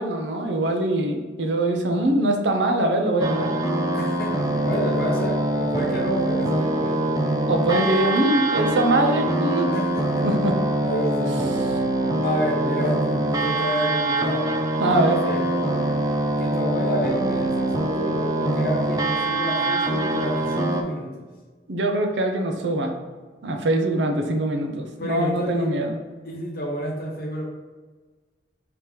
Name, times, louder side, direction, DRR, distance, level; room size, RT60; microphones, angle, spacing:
voice 1, 0.0-3.5 7.5-9.7 10.2-10.5 14.8-15.2 21.7-22.9 23.4-26.0, right 1 dB, 80° right, 4 dB, 0.6 m, -23 dB
sound 1, 3.2-20.8, right 1 dB, 20° right, 0.4 m, -24 dB
voice 2, 3.9-4.4 4.6-7.1 9.7-10.2 10.8-11.4 12.2-14.5 14.9-15.5 16.4-21.1 25.0-25.7 26.2-27.4, equal, 55° left, -1 dB, 1.0 m, -29 dB
3.4 x 2.9 x 4.7 m, 1.4 s
head